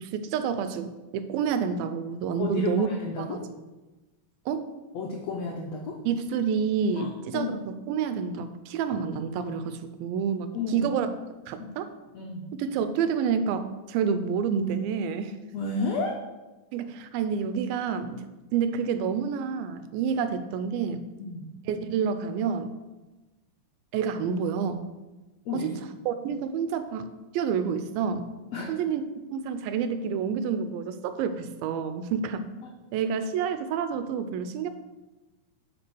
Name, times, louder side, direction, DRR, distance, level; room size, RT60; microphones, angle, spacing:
voice 1, 0.0-2.9 3.2-3.4 4.5-4.6 6.1-7.6 7.9-11.1 11.5-11.9 12.6-15.4 16.7-18.2 18.5-21.0 21.7-22.7 23.9-24.9 25.5-25.7 26.1-28.3 28.7-29.0 29.3-32.5 32.9-34.7, right 6 dB, 90° right, 10 dB, 2.5 m, -28 dB
voice 2, 2.4-3.4 4.9-6.0 6.9-7.5 10.5-10.9 11.6-11.7 12.1-12.5 15.5-16.2 21.2-21.5 25.4-25.8 28.5-28.7 32.6-32.7, left 4 dB, 80° left, 0 dB, 1.4 m, -32 dB
9.5 x 4.8 x 6.2 m, 1.1 s
omnidirectional pair, 4.2 m